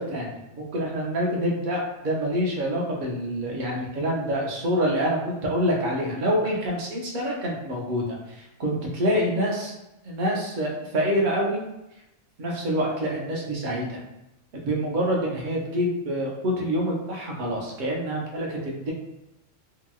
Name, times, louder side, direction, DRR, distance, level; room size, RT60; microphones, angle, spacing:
voice 1, 0.0-9.7 10.0-11.6 12.4-14.0 14.5-18.9, equal, 50° right, -2 dB, 0.7 m, -26 dB
2.8 x 2.8 x 2.3 m, 0.90 s
omnidirectional pair, 1.3 m